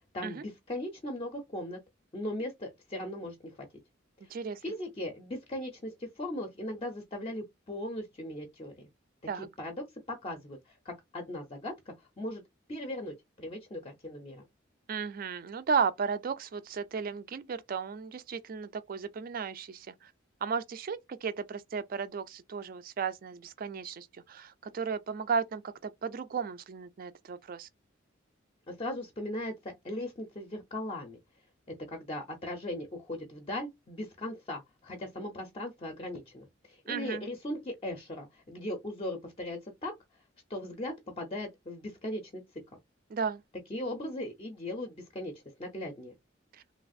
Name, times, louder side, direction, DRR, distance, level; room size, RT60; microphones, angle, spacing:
voice 1, 0.1-1.8 2.1-3.7 4.2-4.3 4.6-8.9 9.4-12.4 12.7-14.4 28.7-31.2 31.7-39.9 40.5-42.4 43.7-46.1, left 1 dB, 30° left, 0.5 m, -38 dB
voice 2, 4.3-4.6 9.3-9.5 14.9-20.1 20.4-27.7 36.9-37.2 43.1-43.4 46.5-46.6, right 6 dB, 45° right, 0.3 m, -34 dB
3.1 x 2.4 x 2.5 m
head